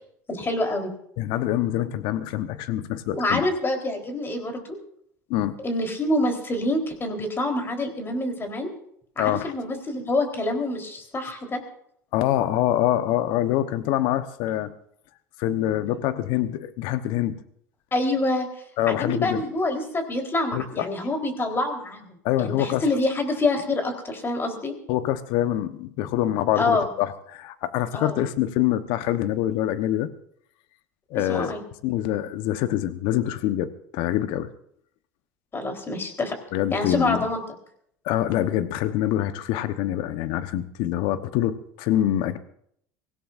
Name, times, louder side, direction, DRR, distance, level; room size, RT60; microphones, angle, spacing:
voice 1, 0.3-0.9 3.1-4.6 5.6-8.7 9.2-11.6 17.9-18.5 18.9-24.7 26.6-26.9 27.9-28.2 31.1-31.6 35.5-36.4 36.7-37.4, left 2 dB, 25° left, 4 dB, 4.0 m, -26 dB
voice 2, 1.2-3.5 5.3-5.6 9.2-9.5 12.1-14.7 15.4-17.4 18.8-19.4 20.5-20.9 22.2-22.9 24.9-30.1 31.1-34.5 36.5-37.3 38.0-42.4, left 12 dB, 65° left, 11 dB, 1.1 m, -25 dB
24.0 x 16.5 x 2.6 m, 0.67 s
hypercardioid pair, 80°, 9 cm